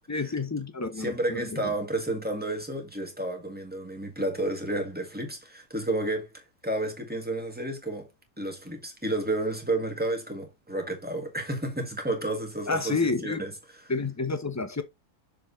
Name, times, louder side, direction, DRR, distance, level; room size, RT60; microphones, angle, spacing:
voice 1, 0.1-1.7 12.7-13.5 13.9-14.8, left 3 dB, 20° left, 0.5 m, -30 dB
voice 2, 1.0-8.1 8.4-13.5, right 1 dB, 5° right, 1.8 m, -31 dB
6.7 x 4.0 x 4.0 m
omnidirectional pair, 1.7 m